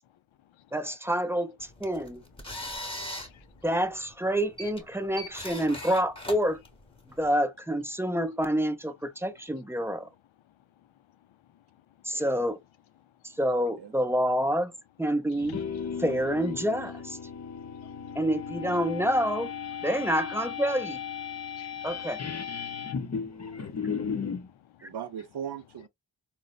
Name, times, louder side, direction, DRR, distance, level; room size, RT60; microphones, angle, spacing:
voice 1, 0.7-2.2 3.6-6.6 7.2-10.1 12.0-12.6 13.4-14.7 15.0-15.6 16.0-17.2 18.2-19.5 19.8-21.0 21.8-22.2, equal, 5° right, 0.5 m, -27 dB
sound 1, 1.6-7.3, left 1 dB, 10° left, 1.0 m, -41 dB
voice 2, 3.2-3.6 11.3-11.6 12.1-12.2 15.3-16.0 17.2-18.2 21.4-21.9 22.6-24.9, left 11 dB, 75° left, 0.5 m, -59 dB
sound 2, 15.3-24.5, left 6 dB, 35° left, 0.6 m, -35 dB
voice 3, 24.8-25.9, right 8 dB, 55° right, 0.5 m, -38 dB
4.0 x 2.1 x 2.3 m
cardioid pair, 60°, 48 cm